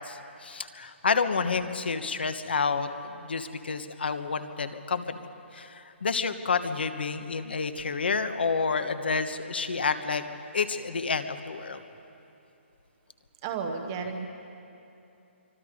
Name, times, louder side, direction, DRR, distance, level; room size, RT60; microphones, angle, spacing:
voice 1, 0.0-10.3 10.5-11.8, left 5 dB, 50° left, 10 dB, 1.3 m, -29 dB
voice 2, 13.4-14.3, right 5 dB, 15° right, 5 dB, 0.8 m, -32 dB
26.0 x 24.5 x 5.2 m, 2.8 s
hypercardioid pair, 180°, 7 cm